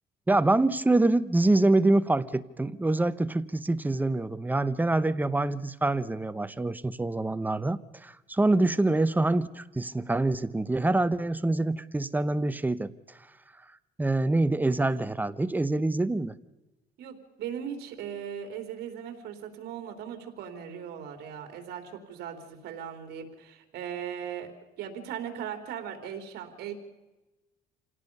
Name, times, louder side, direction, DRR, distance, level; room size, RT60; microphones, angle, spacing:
voice 1, 0.3-12.9 14.0-16.4, right 2 dB, 10° right, 14 dB, 0.8 m, -25 dB
voice 2, 17.0-24.5 24.8-26.7, right 8 dB, 75° right, 5 dB, 3.6 m, -38 dB
27.0 x 17.5 x 5.5 m, 1.1 s
cardioid pair, 110°, 17 cm